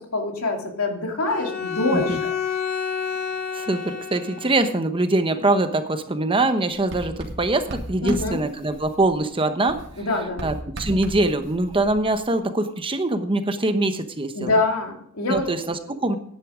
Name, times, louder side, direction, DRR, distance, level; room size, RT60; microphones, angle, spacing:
voice 1, 0.0-2.3 8.0-8.4 10.0-10.4 14.3-15.5, left 2 dB, 85° left, 2 dB, 2.6 m, -25 dB
Bowed string instrument, 1.3-4.8, left 7 dB, 45° left, 4.9 m, -29 dB
voice 2, 3.5-9.8 10.4-14.5 15.3-16.2, right 2 dB, 25° right, 8 dB, 1.0 m, -23 dB
Writing, 6.7-9.4 9.7-12.4, right 1 dB, 60° right, 2.2 m, -37 dB
11.0 x 10.5 x 5.0 m, 0.62 s
head